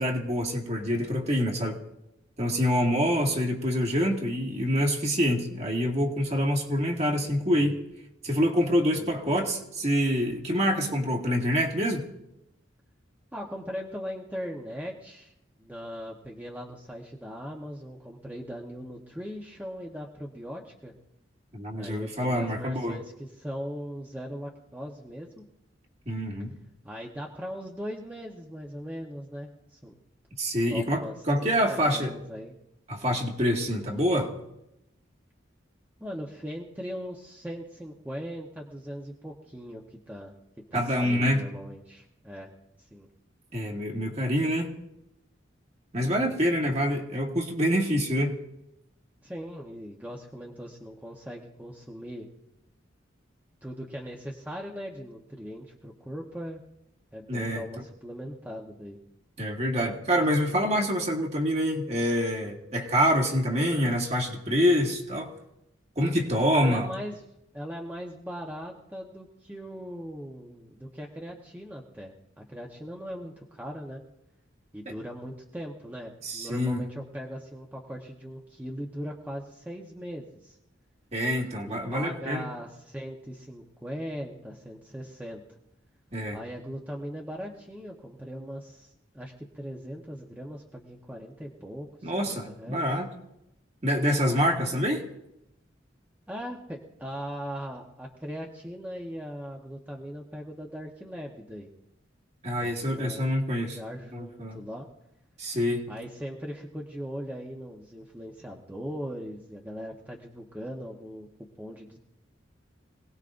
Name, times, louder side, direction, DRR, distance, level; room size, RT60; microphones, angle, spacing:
voice 1, 0.0-1.8 2.4-7.8 8.2-12.1 21.5-23.0 26.1-26.5 30.4-32.1 32.9-34.3 40.7-41.4 43.5-44.7 45.9-48.3 57.3-57.6 59.4-65.3 66.0-66.9 76.2-76.9 81.1-82.5 86.1-86.4 92.0-93.1 93.8-95.0 102.4-103.8 104.1-104.6 105.4-105.9, equal, 35° right, 2.0 m, -26 dB
voice 2, 9.0-9.4 13.3-15.3 15.6-20.9 21.7-25.4 26.8-30.0 30.7-31.1 31.4-32.6 36.0-40.3 40.7-42.5 42.8-43.1 46.6-46.8 49.2-52.2 53.6-56.6 57.1-59.0 66.6-67.2 67.5-74.0 74.7-80.6 81.7-85.6 86.3-92.8 94.6-94.7 96.3-101.7 102.6-103.3 103.6-104.9 105.9-111.3 111.6-112.0, equal, 10° right, 1.1 m, -39 dB
26.0 x 18.5 x 2.6 m
head